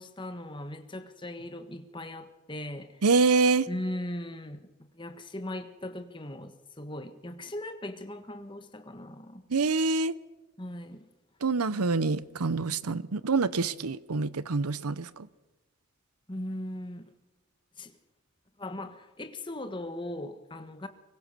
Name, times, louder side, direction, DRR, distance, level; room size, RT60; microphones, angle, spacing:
voice 1, 0.0-3.0 3.7-4.7 4.9-9.4 10.6-11.1 11.7-11.8 16.3-17.1 17.8-18.0 18.6-20.9, left 1 dB, 20° left, 8 dB, 1.4 m, -39 dB
voice 2, 3.0-3.7 9.5-10.2 11.4-15.3, right 4 dB, 90° right, 18 dB, 0.8 m, -26 dB
24.5 x 21.5 x 6.8 m, 1.1 s
head